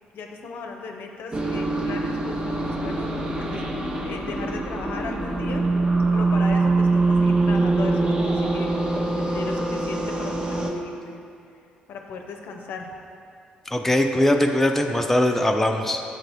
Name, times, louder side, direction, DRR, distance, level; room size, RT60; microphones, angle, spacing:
voice 1, 0.1-5.7 6.1-11.2 11.9-12.9, left 4 dB, 55° left, 3 dB, 0.6 m, -36 dB
sound 1, 1.3-10.7, right 3 dB, 20° right, 0.8 m, -23 dB
voice 2, 13.7-16.0, left 1 dB, 5° left, 3 dB, 0.5 m, -21 dB
7.6 x 3.8 x 4.6 m, 2.5 s
figure-of-eight pair, 45°, 4 cm